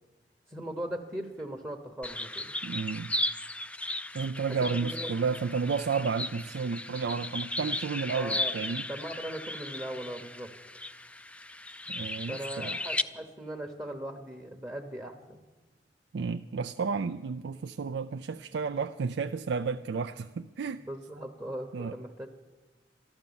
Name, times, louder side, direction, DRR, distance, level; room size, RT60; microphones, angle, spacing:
voice 1, 0.5-2.5 4.7-5.1 8.1-8.5 8.9-10.5 12.3-15.4 20.8-22.3, right 1 dB, 15° right, 2 dB, 0.9 m, -39 dB
sound 1, 2.0-13.0, left 1 dB, 5° left, 0.4 m, -36 dB
voice 2, 2.6-3.1 4.1-8.9 11.9-12.8 16.1-20.8 21.7-22.0, right 5 dB, 70° right, 7 dB, 0.4 m, -32 dB
13.5 x 12.0 x 7.0 m, 1.2 s
head